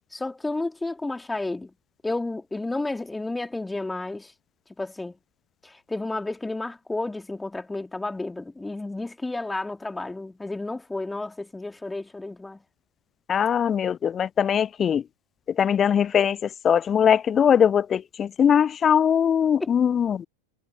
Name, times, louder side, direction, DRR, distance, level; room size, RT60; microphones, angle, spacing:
voice 1, 0.1-1.7 2.0-4.3 4.8-5.2 5.6-12.6 19.6-19.7, left 2 dB, 5° left, 3.1 m, -31 dB
voice 2, 13.3-15.0 15.6-20.3, left 8 dB, 25° left, 0.3 m, -21 dB
figure-of-eight pair, 90°, 0 cm